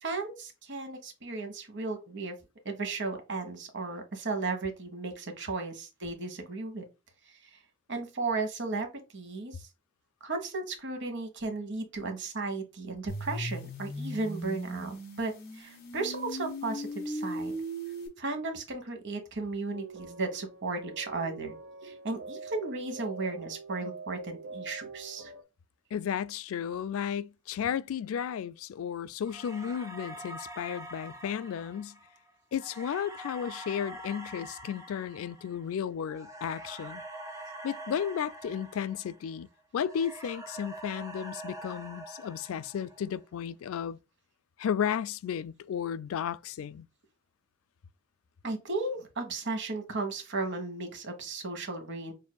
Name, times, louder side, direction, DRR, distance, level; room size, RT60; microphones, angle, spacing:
voice 1, 0.0-2.3 2.6-6.8 7.9-8.9 9.1-9.6 10.2-17.5 18.2-21.5 21.8-25.3 48.4-52.1, right 3 dB, 60° right, 1.1 m, -35 dB
sound 1, 13.1-18.1, equal, 50° left, 1.4 m, -38 dB
sound 2, 19.7-25.4, right 4 dB, 75° right, 0.8 m, -44 dB
voice 2, 25.9-32.0 32.5-37.0 37.6-39.5 39.7-44.0 44.6-46.9, left 8 dB, 75° left, 0.3 m, -33 dB
sound 3, 29.3-39.5 39.8-43.2, right 1 dB, 15° right, 0.8 m, -45 dB
6.8 x 2.7 x 2.2 m
head